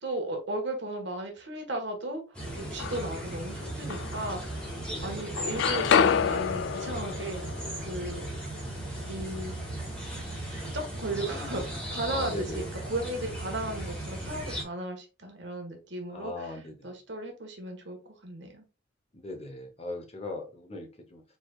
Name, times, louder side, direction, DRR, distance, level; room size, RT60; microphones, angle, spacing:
voice 1, 0.0-4.7 5.0-7.4 7.9-8.7 9.1-9.5 10.7-18.6, right 1 dB, 65° right, 3 dB, 1.4 m, -36 dB
sound 1, 2.3-14.6, right 1 dB, 5° left, 1.8 m, -37 dB
sound 2, 2.5-3.3 3.9-4.9 5.2-9.1, left 7 dB, 65° left, 0.3 m, -29 dB
voice 2, 4.8-5.2 12.1-12.7 16.1-16.9 19.1-21.2, left 2 dB, 30° left, 4 dB, 0.9 m, -39 dB
4.8 x 4.1 x 2.3 m, 0.31 s
head